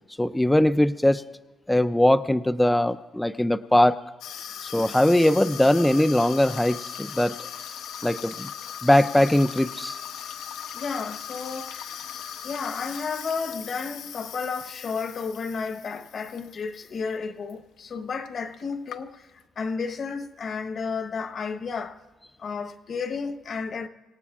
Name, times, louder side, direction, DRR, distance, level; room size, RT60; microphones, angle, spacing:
voice 1, 0.2-1.2 1.7-4.0 4.6-7.3 8.0-8.5 8.8-10.0, left 1 dB, 5° left, 0.4 m, -21 dB
Water tap faucet / Sink (filling or washing), 4.2-16.9 17.2-17.5 18.3-18.4 18.5-19.4, left 9 dB, 85° left, 0.7 m, -39 dB
voice 2, 10.7-12.0 12.4-22.0 22.4-23.9, left 5 dB, 50° left, 1.1 m, -32 dB
26.0 x 17.5 x 2.4 m
cardioid pair, 90°, 0 cm